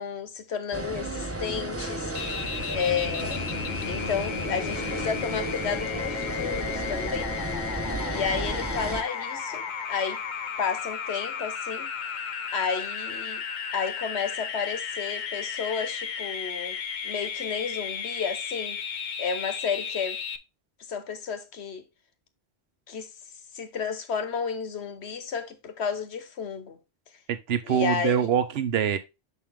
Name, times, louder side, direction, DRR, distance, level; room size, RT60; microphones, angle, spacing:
voice 1, 0.0-2.1 2.7-3.4 3.8-7.4 8.1-10.2 10.6-11.9 12.5-13.4 13.7-18.8 19.2-20.2 20.9-21.8 22.9-23.1 23.5-26.8 27.6-28.3, left 6 dB, 80° left, 1.3 m, -32 dB
sound 1, 0.7-9.0, right 2 dB, 15° right, 0.9 m, -33 dB
sound 2, 2.1-20.4, left 7 dB, 50° left, 0.7 m, -34 dB
voice 2, 27.3-29.0, right 8 dB, 70° right, 1.0 m, -24 dB
7.3 x 4.1 x 3.5 m
omnidirectional pair, 1.1 m